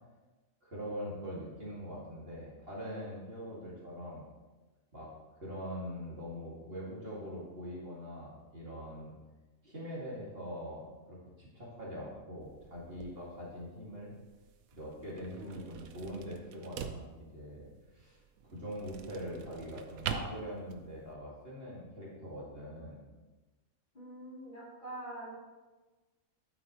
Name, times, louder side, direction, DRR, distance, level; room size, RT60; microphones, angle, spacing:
voice 1, 0.6-4.3 4.9-9.1 9.6-14.1 14.7-23.1, equal, 40° right, -6 dB, 2.6 m, -43 dB
sound 1, 12.4-21.1, right 7 dB, 80° right, 1.1 m, -45 dB
voice 2, 23.9-25.3, right 1 dB, 35° left, -7 dB, 3.4 m, -45 dB
12.0 x 8.8 x 3.2 m, 1.2 s
omnidirectional pair, 1.5 m